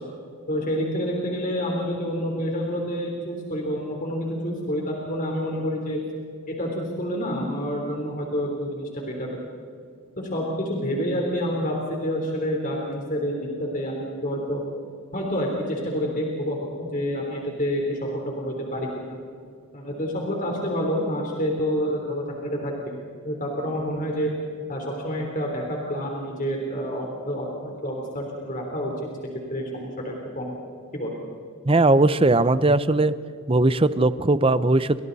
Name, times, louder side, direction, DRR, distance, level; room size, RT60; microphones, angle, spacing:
voice 1, 0.5-6.0 6.5-9.4 10.2-14.6 15.1-19.2 19.7-22.9 23.2-24.3 24.7-28.9 29.5-30.6 30.9-31.2, equal, 35° left, -1 dB, 3.7 m, -28 dB
voice 2, 31.6-33.1 33.5-35.0, right 2 dB, 25° right, 14 dB, 0.7 m, -19 dB
29.5 x 27.0 x 4.2 m, 2.3 s
head